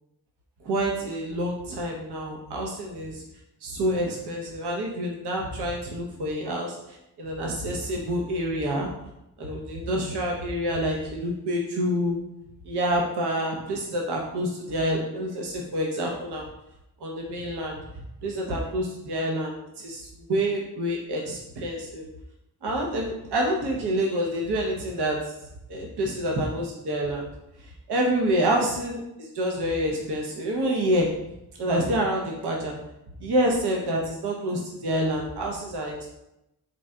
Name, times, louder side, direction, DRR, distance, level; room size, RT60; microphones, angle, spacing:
voice 1, 0.6-3.2 3.6-8.9 9.4-12.2 12.7-16.4 17.0-17.8 18.2-22.0 22.6-25.2 25.7-27.3 27.9-31.1 31.6-32.8 33.2-36.1, equal, 80° right, -1 dB, 0.7 m, -27 dB
4.0 x 2.2 x 3.5 m, 0.88 s
cardioid pair, 65°, 39 cm